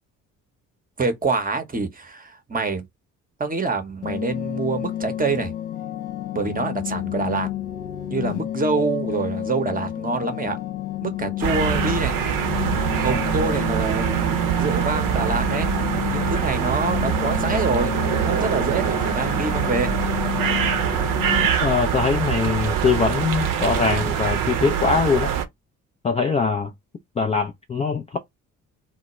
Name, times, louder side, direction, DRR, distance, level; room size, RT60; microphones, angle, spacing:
voice 1, 1.0-2.9 3.4-5.5 6.3-7.5 8.1-10.6 11.0-12.1 13.0-14.1 14.6-15.7 16.1-18.0 18.2-19.9, right 4 dB, 20° right, 0.8 m, -26 dB
sound 1, 4.0-21.5, left 12 dB, 70° left, 0.6 m, -30 dB
sound 2, 11.4-25.5, right 9 dB, 50° right, 0.6 m, -24 dB
voice 2, 21.6-25.3 26.0-26.7 27.2-28.2, left 5 dB, 15° left, 0.3 m, -22 dB
2.1 x 2.1 x 2.9 m
hypercardioid pair, 45°, 40 cm